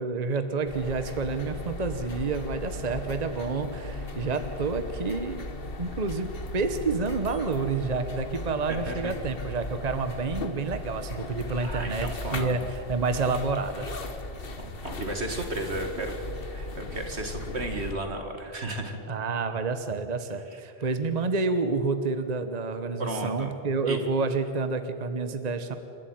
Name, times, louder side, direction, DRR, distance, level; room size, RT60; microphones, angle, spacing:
voice 1, 0.0-5.4 5.8-14.1 19.1-25.8, right 4 dB, 40° right, 9 dB, 1.1 m, -29 dB
sound 1, 0.7-17.9, left 2 dB, 55° left, 1.6 m, -37 dB
voice 2, 8.7-9.1 11.6-12.7 14.6-16.1 16.5-19.0 20.5-20.6 23.0-23.5 23.9-24.0, right 2 dB, 75° right, 5 dB, 2.5 m, -33 dB
28.5 x 13.0 x 9.3 m, 2.9 s
omnidirectional pair, 1.1 m